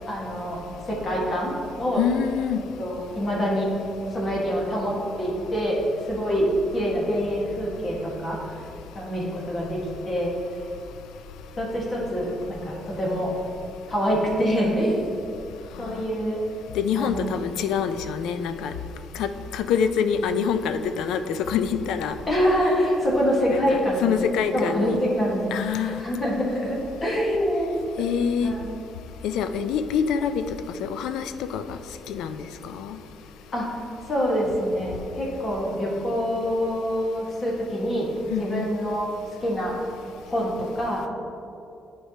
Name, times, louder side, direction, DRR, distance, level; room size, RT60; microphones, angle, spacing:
voice 1, 0.1-0.6 0.9-2.0 2.8-3.7 4.1-5.8 6.1-6.5 6.7-8.4 8.9-10.3 11.6-13.3 13.9-15.0 15.8-16.4 16.9-17.3 22.3-24.2 24.5-27.8 28.4-28.7 33.5-33.7 34.1-38.1 38.4-39.1 39.4-39.9 40.3-41.1, equal, 35° left, -4 dB, 1.5 m, -25 dB
voice 2, 2.0-2.6 16.7-18.7 19.1-22.2 23.5-25.1 25.5-26.0 28.0-28.5 29.2-30.4 30.8-31.8 32.1-33.0 38.3-38.7, left 7 dB, 85° left, 9 dB, 0.4 m, -26 dB
10.0 x 4.7 x 2.8 m, 2.7 s
cardioid pair, 105°, 0 cm